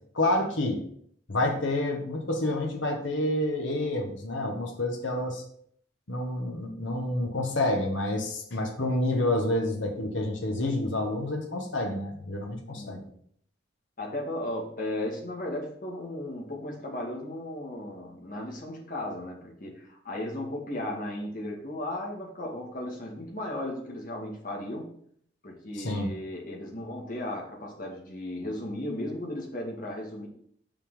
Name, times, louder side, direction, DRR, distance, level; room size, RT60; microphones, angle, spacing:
voice 1, 0.1-0.8 1.3-5.4 6.1-13.0 25.7-26.1, left 1 dB, 85° left, 1 dB, 1.3 m, -28 dB
voice 2, 12.7-13.1 14.0-24.9 25.4-30.3, left 1 dB, 45° left, -2 dB, 1.9 m, -35 dB
5.6 x 5.3 x 4.9 m, 0.63 s
head